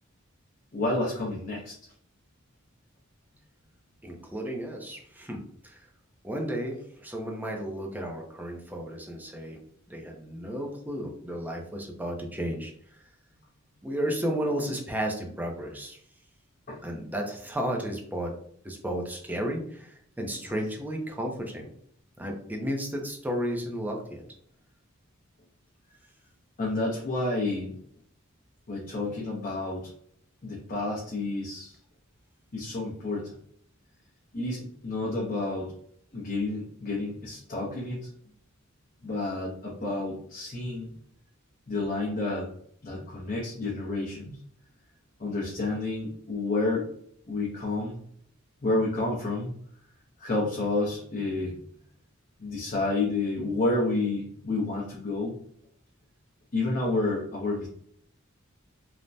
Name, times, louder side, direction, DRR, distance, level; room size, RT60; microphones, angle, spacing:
voice 1, 0.7-1.7 16.7-16.8 26.6-27.7 28.7-29.9 30.4-31.8 32.5-33.3 34.3-35.7 36.1-38.1 39.0-40.9 41.7-42.5 42.8-44.4 45.2-46.9 47.3-48.0 48.6-49.5 50.2-51.5 52.4-55.4 56.5-57.7, left 2 dB, 40° left, -4 dB, 0.6 m, -30 dB
voice 2, 4.0-5.9 6.2-9.6 9.9-13.0 13.8-16.0 16.8-18.3 18.6-21.7 22.2-24.2, equal, 10° right, 1 dB, 0.5 m, -33 dB
3.2 x 2.1 x 2.6 m, 0.64 s
head